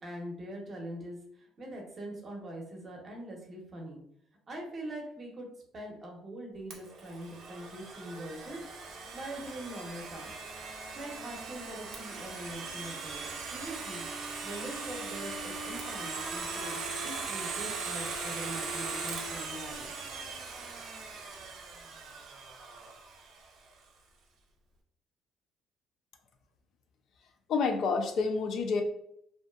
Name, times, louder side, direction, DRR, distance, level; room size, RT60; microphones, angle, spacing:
voice 1, 0.0-4.0 4.5-5.5 5.7-8.6 9.1-10.3 11.0-14.1 14.4-19.9, right 1 dB, 35° right, 0 dB, 0.7 m, -43 dB
Domestic sounds home sounds, 6.7-23.5, right 4 dB, 70° right, 0.5 m, -39 dB
voice 2, 27.5-28.8, left 4 dB, 60° left, 5 dB, 0.3 m, -28 dB
2.6 x 2.2 x 2.2 m, 0.74 s
cardioid pair, 120°, 0 cm